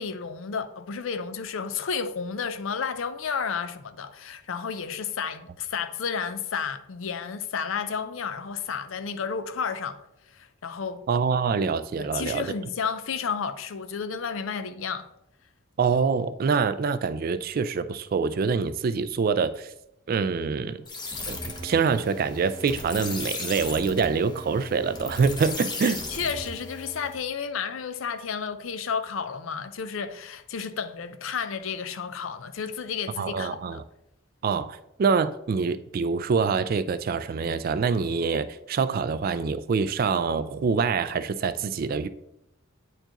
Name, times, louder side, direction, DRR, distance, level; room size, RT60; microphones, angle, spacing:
voice 1, 0.0-10.0 10.3-11.0 12.0-15.1 26.1-33.8, left 6 dB, 70° left, 0.5 m, -32 dB
voice 2, 11.1-12.5 15.8-19.7 20.1-20.8 21.3-21.4 21.6-26.0 33.2-33.8 34.4-42.1, right 5 dB, 45° right, 0.3 m, -25 dB
sound 1, 20.9-27.2, left 2 dB, 20° left, 0.8 m, -36 dB
9.1 x 4.5 x 2.9 m
head